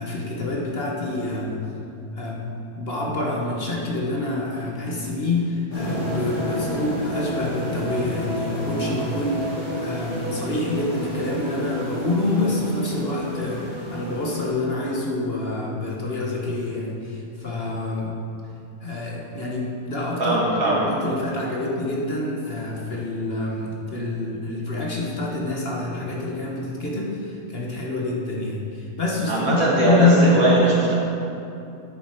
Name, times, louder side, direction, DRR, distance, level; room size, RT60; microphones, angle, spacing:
voice 1, 0.0-1.6 2.1-2.5 2.8-18.1 18.8-30.8, left 2 dB, 45° left, -3 dB, 1.4 m, -26 dB
sound 1, 5.7-14.5, equal, 70° left, 3.1 m, -30 dB
voice 2, 20.2-20.8 29.3-30.9, right 1 dB, 70° right, -5 dB, 2.4 m, -20 dB
10.0 x 8.0 x 4.5 m, 2.6 s
omnidirectional pair, 1.5 m